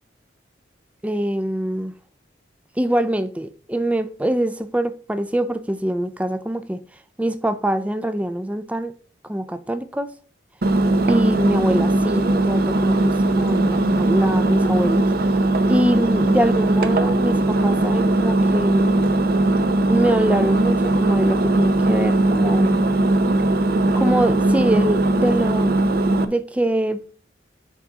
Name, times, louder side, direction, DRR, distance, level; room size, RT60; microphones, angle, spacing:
voice 1, 1.0-1.9 2.8-6.8 7.2-8.9 9.2-10.1 11.1-15.1 15.7-19.0 19.9-22.9 23.9-25.7 26.3-27.0, right 1 dB, 5° right, 0.4 m, -23 dB
Engine, 10.6-26.3, right 2 dB, 55° right, 0.6 m, -19 dB
6.0 x 4.0 x 5.9 m
head